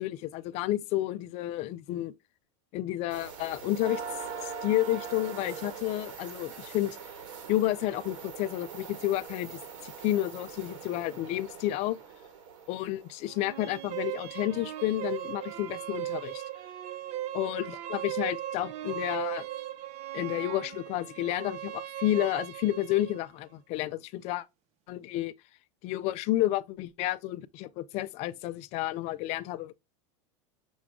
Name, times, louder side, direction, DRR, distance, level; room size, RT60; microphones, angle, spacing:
voice 1, 0.0-2.1 2.7-4.0 4.4-7.0 7.5-12.0 12.7-16.4 17.3-19.5 20.1-24.4 24.9-25.3 25.8-29.7, left 15 dB, 40° left, 0.4 m, -31 dB
sound 1, 3.1-13.7 15.7-15.8 16.4-16.5, right 6 dB, 75° right, 1.4 m, -42 dB
sound 2, 13.3-23.2, right 13 dB, 40° right, 0.5 m, -38 dB
6.1 x 2.3 x 3.6 m
supercardioid pair, 135°, 17 cm